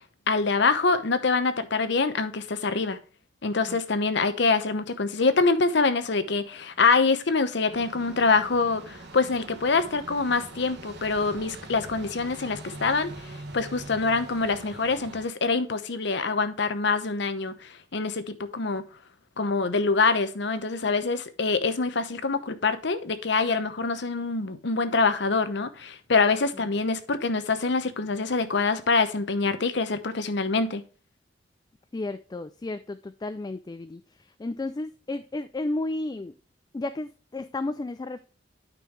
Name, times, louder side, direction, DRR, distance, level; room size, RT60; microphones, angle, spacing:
voice 1, 0.3-3.0 3.4-18.8 19.4-30.8, left 4 dB, 65° left, 0.8 m, -25 dB
sound 1, 7.7-15.3, right 2 dB, 60° right, 1.7 m, -43 dB
voice 2, 20.8-21.2 31.9-34.0 34.4-36.3 36.7-38.2, left 2 dB, 20° left, 0.3 m, -33 dB
9.1 x 5.5 x 3.3 m
head